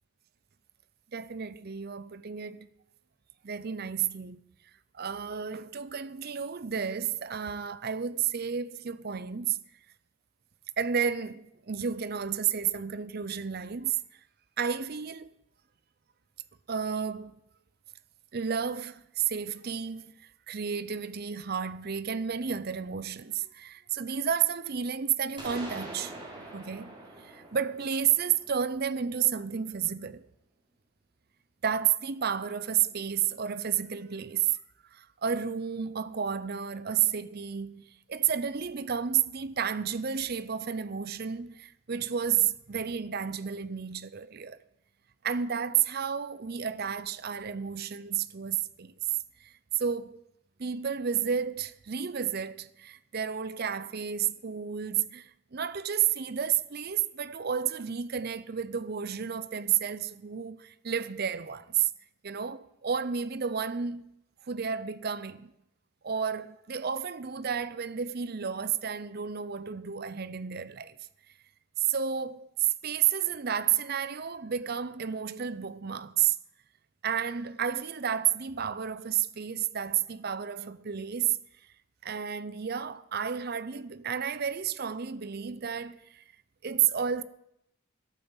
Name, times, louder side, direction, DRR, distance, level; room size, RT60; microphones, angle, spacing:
voice 1, 1.1-2.7 3.4-4.4 4.9-9.6 10.8-14.0 14.6-15.3 16.7-17.4 18.3-26.1 26.5-27.0 27.2-30.3 31.6-34.6 34.9-44.6 45.2-50.2 50.6-61.9 62.2-64.1 64.5-65.5 66.0-71.0 71.8-76.4 77.0-81.4 82.0-86.2 86.6-87.2, right 8 dB, 45° right, 0.6 m, -31 dB
sound 1, 25.4-29.2, right 1 dB, 20° right, 3.6 m, -44 dB
12.5 x 9.1 x 7.1 m
head